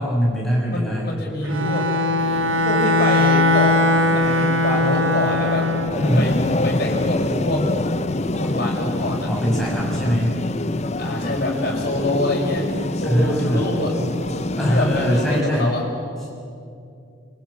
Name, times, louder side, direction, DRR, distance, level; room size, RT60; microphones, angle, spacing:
voice 1, 0.0-1.1 6.0-6.3 9.3-10.4 13.1-13.6 14.6-15.7, equal, ahead, -5 dB, 6.4 m, -21 dB
voice 2, 0.7-1.9 2.6-3.8 4.1-5.7 6.2-6.4 6.6-7.7 8.3-9.3 11.0-12.7 12.9-14.1 14.7-15.9, left 1 dB, 50° left, -1 dB, 5.9 m, -25 dB
Bowed string instrument, 1.4-6.0, left 1 dB, 85° right, 2.1 m, -19 dB
sound 1, 2.2-15.4, left 2 dB, 35° left, 0.7 m, -26 dB
23.5 x 23.5 x 8.5 m, 2.5 s
head